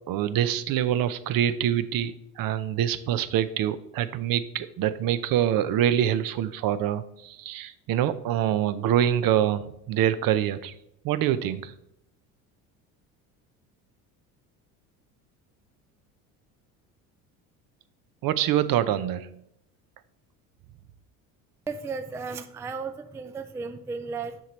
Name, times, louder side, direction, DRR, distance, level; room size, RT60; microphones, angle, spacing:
voice 1, 0.1-10.7 11.0-11.7 18.2-19.3, right 11 dB, 50° right, 13 dB, 0.6 m, -25 dB
voice 2, 21.7-24.4, right 4 dB, 5° right, 9 dB, 0.3 m, -34 dB
7.2 x 5.9 x 3.1 m, 0.78 s
hypercardioid pair, 70°, 44 cm